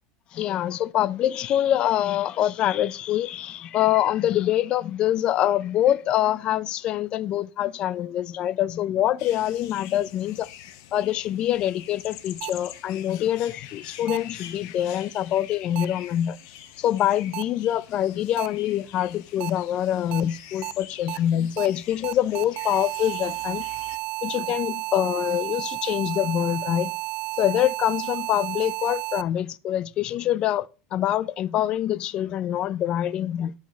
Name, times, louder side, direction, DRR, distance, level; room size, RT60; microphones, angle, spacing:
voice 1, 0.3-10.5 10.9-16.4 16.8-23.6 24.2-26.9 27.4-33.5, left 12 dB, 40° left, 0.4 m, -25 dB
sound 1, 9.2-24.0, left 11 dB, 65° left, 1.0 m, -45 dB
sound 2, 12.4-12.5 14.1-14.2 15.8-15.9 17.3-17.4 18.4-18.5 19.4-19.5 20.1-20.2 20.6-20.7 21.1-21.2 21.6-21.7 22.0-29.2, right 22 dB, 50° right, 0.4 m, -32 dB
10.5 x 7.2 x 4.1 m
supercardioid pair, 140°, 3 cm